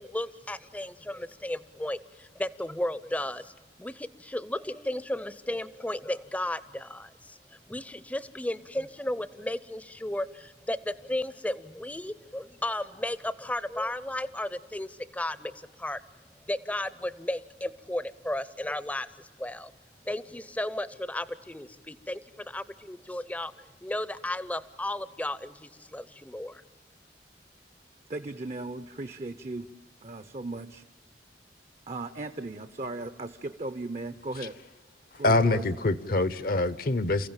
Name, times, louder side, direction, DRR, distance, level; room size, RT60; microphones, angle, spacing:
voice 1, 0.0-3.5 3.8-16.0 16.4-19.7 20.1-26.6, left 1 dB, 10° left, 0.6 m, -34 dB
voice 2, 28.1-29.7 30.0-30.8 31.9-34.6 35.2-35.6, right 2 dB, 40° right, 0.6 m, -37 dB
voice 3, 35.2-37.3, left 2 dB, 55° left, 0.8 m, -25 dB
29.0 x 15.5 x 8.9 m
head